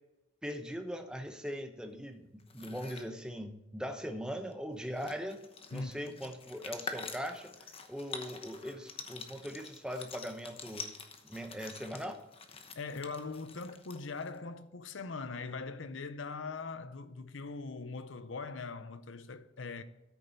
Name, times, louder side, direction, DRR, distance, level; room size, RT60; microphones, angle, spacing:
voice 1, 0.4-5.4 5.7-10.9 11.3-12.2, equal, 5° right, 0.8 m, -40 dB
sound 1, 2.4-3.1 4.5-4.6 4.8-14.4, left 5 dB, 30° left, 0.9 m, -46 dB
voice 2, 5.7-6.2 12.8-19.8, left 4 dB, 85° left, 0.7 m, -41 dB
13.5 x 6.7 x 4.1 m
head